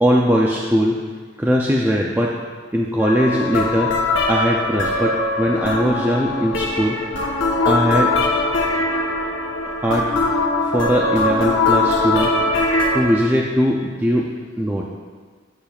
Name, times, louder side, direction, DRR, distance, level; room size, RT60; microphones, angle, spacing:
voice 1, 0.0-1.0 1.4-2.4 2.7-3.9 4.3-7.0 7.6-8.1 9.6-10.1 10.6-12.3 12.9-14.3 14.6-14.8, equal, 10° right, -2 dB, 0.4 m, -20 dB
sound 1, 3.0-13.0, left 2 dB, 80° left, 1.0 m, -21 dB
10.5 x 8.4 x 2.4 m, 1.5 s
head